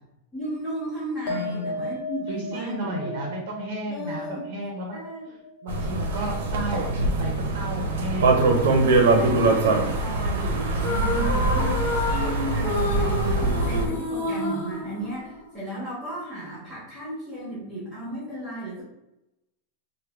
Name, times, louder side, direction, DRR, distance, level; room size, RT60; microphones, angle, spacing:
voice 1, 0.3-3.2 3.9-4.4 4.9-5.2 9.1-18.8, right 1 dB, 10° right, -8 dB, 0.9 m, -34 dB
sound 1, 1.3-8.0 8.2-8.9, left 2 dB, 55° left, 0.5 m, -38 dB
voice 2, 1.3-1.9 2.3-5.4 5.6-8.8 11.1-11.8 14.2-14.3, right 1 dB, 45° right, 1 dB, 0.5 m, -34 dB
sound 2, 5.7-13.9, right 2 dB, 90° right, 0.6 m, -23 dB
sound 3, 10.7-15.6, left 2 dB, 70° left, 1.0 m, -29 dB
3.3 x 2.1 x 3.3 m, 0.91 s
supercardioid pair, 170°, 0 cm